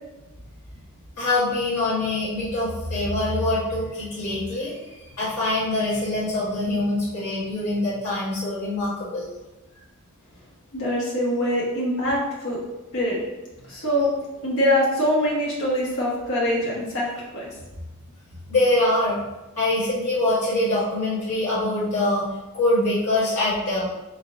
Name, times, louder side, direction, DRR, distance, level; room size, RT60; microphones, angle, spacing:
voice 1, 1.2-9.3 18.5-19.2 19.6-23.9, left 2 dB, 85° left, -10 dB, 1.5 m, -24 dB
voice 2, 10.7-12.6 12.9-13.2 13.7-14.1 14.4-17.5, equal, 60° left, -4 dB, 1.4 m, -24 dB
3.9 x 3.9 x 2.7 m, 1.1 s
head